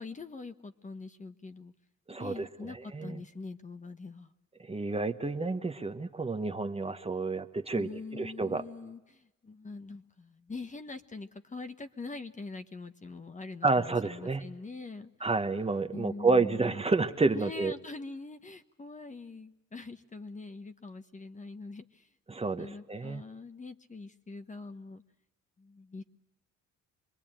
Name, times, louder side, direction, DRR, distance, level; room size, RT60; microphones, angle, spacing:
voice 1, 0.0-1.7 2.2-4.3 7.8-15.1 15.9-16.8 17.3-22.0 22.6-25.0 25.6-26.0, left 3 dB, 25° left, 9 dB, 1.2 m, -43 dB
voice 2, 2.1-3.2 4.6-8.6 13.6-14.4 15.2-17.7 22.3-23.2, right 3 dB, 20° right, 8 dB, 1.1 m, -30 dB
25.5 x 21.0 x 8.9 m, 1.0 s
cardioid pair, 90°, 30 cm